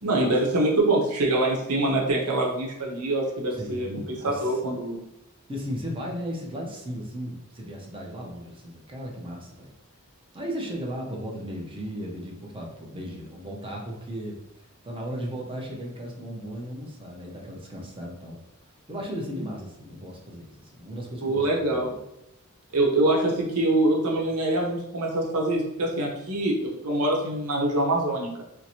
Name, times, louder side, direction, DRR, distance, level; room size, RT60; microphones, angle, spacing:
voice 1, 0.0-5.0 21.2-21.9 22.7-28.3, right 2 dB, 85° right, -2 dB, 0.9 m, -24 dB
voice 2, 3.5-4.6 5.5-9.7 10.3-14.4 14.8-18.4 18.9-22.0, equal, 25° right, -1 dB, 0.7 m, -36 dB
4.5 x 2.1 x 2.8 m, 0.84 s
head